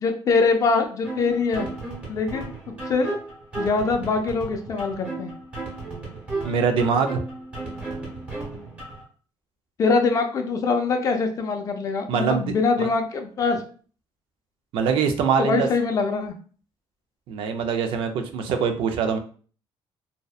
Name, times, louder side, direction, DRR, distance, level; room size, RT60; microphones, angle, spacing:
voice 1, 0.0-1.7 2.1-2.5 2.9-3.2 3.6-5.3 9.8-13.6 15.4-16.3, left 4 dB, 35° left, 4 dB, 0.4 m, -23 dB
sound 1, 1.0-9.0, right 3 dB, 10° right, 1.0 m, -35 dB
voice 2, 6.4-7.2 12.1-12.5 12.8-12.9 14.7-15.7 17.3-19.2, right 6 dB, 65° right, 6 dB, 0.4 m, -23 dB
2.6 x 2.1 x 2.3 m, 0.41 s
cardioid pair, 165°, 10 cm